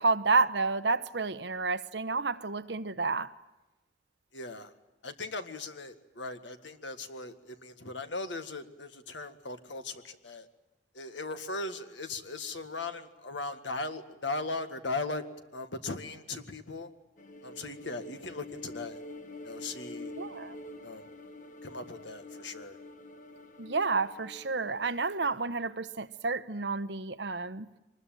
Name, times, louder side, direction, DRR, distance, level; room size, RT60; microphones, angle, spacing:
voice 1, 0.0-3.3 20.1-20.5 23.6-27.7, right 4 dB, 70° right, 11 dB, 1.0 m, -30 dB
voice 2, 4.3-4.7 5.0-10.5 10.9-15.2 15.5-16.9 17.4-19.1 19.4-20.1 20.8-21.1 21.6-22.8, left 3 dB, 85° left, 8 dB, 1.8 m, -38 dB
sound 1, 17.2-24.9, left 1 dB, 45° left, 1.3 m, -46 dB
24.0 x 20.5 x 9.1 m, 0.99 s
head